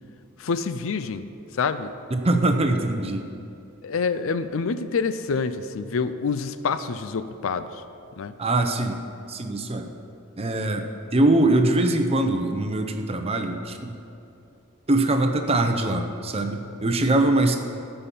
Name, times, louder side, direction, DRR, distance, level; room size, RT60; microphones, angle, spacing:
voice 1, 0.4-1.3 1.5-1.9 3.8-7.8 8.2-8.3, left 5 dB, 65° left, 12 dB, 0.5 m, -27 dB
voice 2, 2.1-3.2 8.4-9.0 9.3-9.9 10.4-14.0 14.9-17.6, right 2 dB, 30° right, 5 dB, 0.7 m, -22 dB
14.5 x 5.6 x 7.0 m, 2.6 s
head